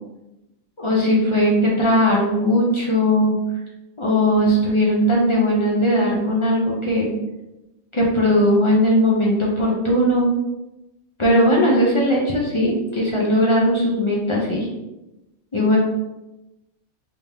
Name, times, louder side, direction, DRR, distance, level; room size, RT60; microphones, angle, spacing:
voice 1, 0.8-3.4 4.0-7.1 7.9-10.3 11.2-14.7 15.5-15.8, equal, 45° left, -4 dB, 0.3 m, -18 dB
3.4 x 3.4 x 2.7 m, 0.96 s
omnidirectional pair, 1.5 m